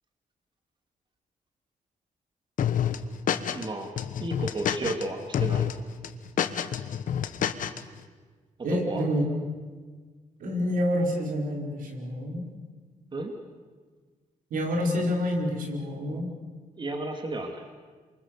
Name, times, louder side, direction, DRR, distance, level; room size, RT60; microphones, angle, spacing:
sound 1, 2.6-3.7 4.0-5.0 5.3-5.7 6.0-7.8, left 9 dB, 75° left, 1.3 m, -27 dB
voice 1, 3.5-3.9 4.2-5.7 8.7-9.0 13.1-13.3 16.8-17.6, right 2 dB, 35° right, 4 dB, 2.6 m, -33 dB
voice 2, 8.6-9.2 10.4-12.4 14.5-16.3, equal, 85° right, 1 dB, 5.2 m, -28 dB
27.5 x 24.5 x 6.9 m, 1.5 s
cardioid pair, 105°, 14 cm